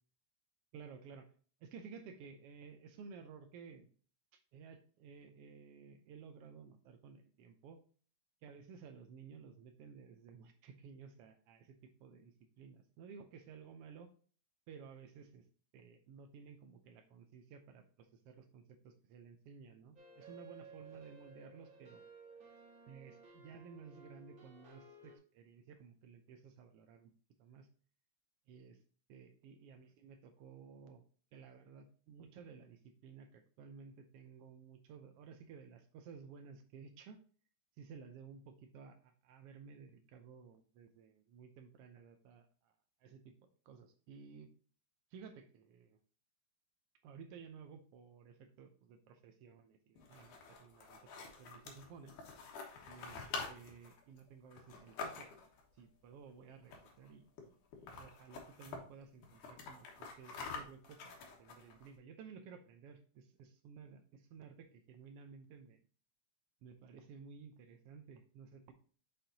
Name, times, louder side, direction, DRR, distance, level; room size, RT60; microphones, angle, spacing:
voice 1, 0.7-1.3 1.6-3.9 4.3-7.8 8.4-14.1 14.7-15.4 15.7-22.0 22.9-27.1 27.4-27.7 28.5-28.7 29.1-31.0 31.3-37.2 37.8-42.7 43.0-43.3 43.7-44.5 45.1-46.0 47.0-52.1 52.9-53.2 53.5-55.5 55.8-65.8 66.6-68.7, right 6 dB, 90° right, 7 dB, 1.3 m, -55 dB
sound 1, 20.0-25.2, right 3 dB, 35° right, 1.4 m, -57 dB
sound 2, 50.0-55.6 56.6-57.1 57.4-57.5 57.7-58.8 59.2-61.9, left 4 dB, 90° left, 2.9 m, -47 dB
6.9 x 5.8 x 2.7 m, 0.42 s
omnidirectional pair, 3.5 m